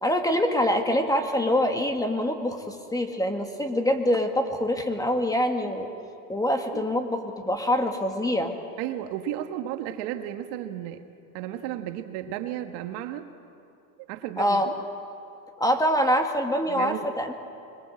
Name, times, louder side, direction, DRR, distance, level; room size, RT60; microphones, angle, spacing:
voice 1, 0.0-5.9 6.3-8.6 14.4-14.7 15.6-17.3, equal, 5° left, 5 dB, 1.8 m, -25 dB
voice 2, 8.8-11.0 11.3-13.3 14.1-14.8 16.7-17.1, right 11 dB, 55° right, 7 dB, 1.7 m, -33 dB
24.5 x 22.5 x 7.8 m, 2.6 s
supercardioid pair, 120°, 49 cm